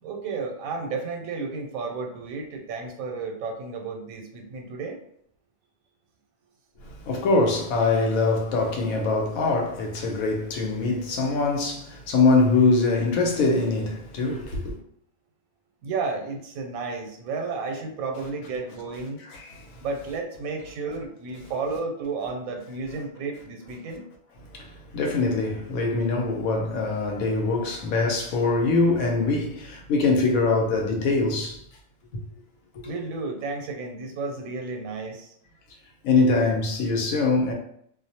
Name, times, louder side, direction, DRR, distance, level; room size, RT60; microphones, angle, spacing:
voice 1, 0.0-5.0 15.8-19.2 19.8-24.0 32.8-35.3, right 4 dB, 85° right, 1.0 m, -32 dB
voice 2, 6.8-14.8 19.3-19.7 24.5-31.6 32.1-32.2 36.0-37.5, left 3 dB, 85° left, 1.0 m, -23 dB
2.4 x 2.0 x 2.7 m
omnidirectional pair, 1.4 m